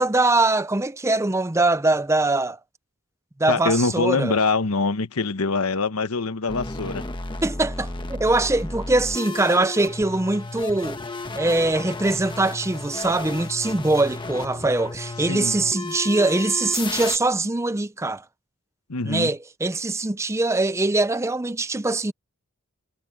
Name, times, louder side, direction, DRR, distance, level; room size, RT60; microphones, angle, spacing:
voice 1, 0.0-2.6 3.4-4.4 7.4-11.0 11.4-18.2 19.0-22.1, right 2 dB, 15° right, 0.5 m, -22 dB
voice 2, 3.5-7.0 15.3-15.6 18.9-19.3, left 3 dB, 85° left, 1.1 m, -24 dB
sound 1, 6.5-17.2, left 2 dB, 20° left, 1.2 m, -33 dB
head